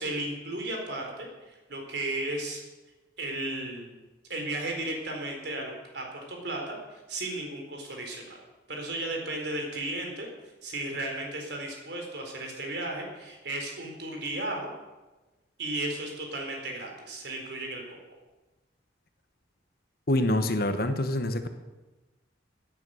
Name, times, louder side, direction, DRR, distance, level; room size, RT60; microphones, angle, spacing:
voice 1, 0.0-2.6 3.2-4.0 4.3-8.3 8.7-10.3 10.6-14.7 15.6-18.0, right 2 dB, 60° right, 1 dB, 4.0 m, -34 dB
voice 2, 20.1-21.5, left 1 dB, 50° left, 8 dB, 1.1 m, -26 dB
16.5 x 10.0 x 6.4 m, 1.1 s
head